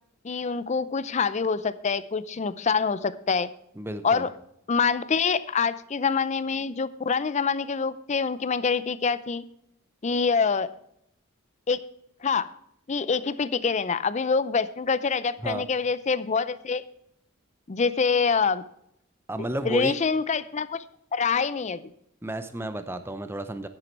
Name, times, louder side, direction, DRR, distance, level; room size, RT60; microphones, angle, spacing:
voice 1, 0.2-3.5 4.0-4.3 4.7-9.4 10.0-10.7 11.7-11.9 12.2-12.5 12.9-16.8 17.7-18.6 19.7-20.8 21.1-21.8, left 5 dB, 35° left, 15 dB, 0.5 m, -25 dB
voice 2, 3.8-4.3 15.4-15.6 19.3-20.0 22.2-23.7, right 1 dB, 10° right, 10 dB, 0.6 m, -32 dB
9.8 x 9.4 x 4.5 m, 0.75 s
head